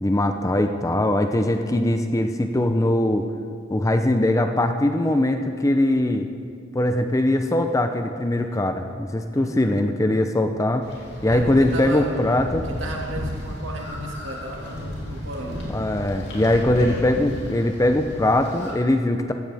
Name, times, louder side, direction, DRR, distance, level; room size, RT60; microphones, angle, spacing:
voice 1, 0.0-3.3 3.7-6.3 6.7-10.9 11.2-12.7 15.7-19.3, left 1 dB, 15° left, 6 dB, 0.5 m, -21 dB
voice 2, 9.3-9.8 11.3-12.1 12.7-15.7, right 1 dB, 65° right, 0 dB, 1.9 m, -34 dB
sound 1, 10.8-18.7, equal, 55° left, 3.1 m, -34 dB
15.0 x 14.5 x 3.4 m, 2.3 s
head